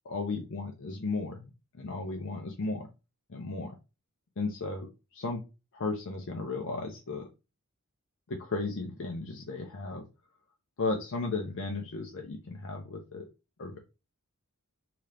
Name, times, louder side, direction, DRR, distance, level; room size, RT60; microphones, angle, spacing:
voice 1, 0.1-1.5 1.8-2.9 3.3-3.8 4.4-5.4 5.7-7.3 8.3-10.0 10.8-13.3 13.6-13.8, left 3 dB, 55° left, 2 dB, 0.5 m, -35 dB
2.8 x 2.4 x 3.3 m, 0.27 s
head